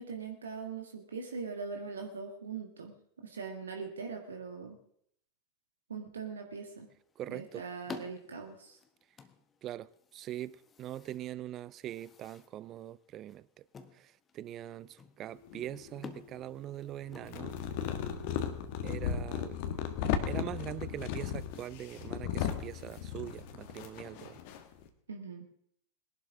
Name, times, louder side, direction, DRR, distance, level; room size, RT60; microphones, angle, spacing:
voice 1, 0.0-4.8 5.9-6.9 7.3-8.8 25.1-25.4, right 5 dB, 70° right, 1.7 m, -41 dB
sound 1, 6.9-17.9, left 5 dB, 20° left, 1.2 m, -52 dB
voice 2, 7.2-7.6 9.6-13.5 13.9-17.6 18.8-19.7 20.3-24.4, right 12 dB, 30° right, 0.5 m, -42 dB
sound 2, 15.4-16.4 17.1-24.9, left 9 dB, 45° left, 1.5 m, -36 dB
21.0 x 11.5 x 3.6 m
figure-of-eight pair, 90°, 0 cm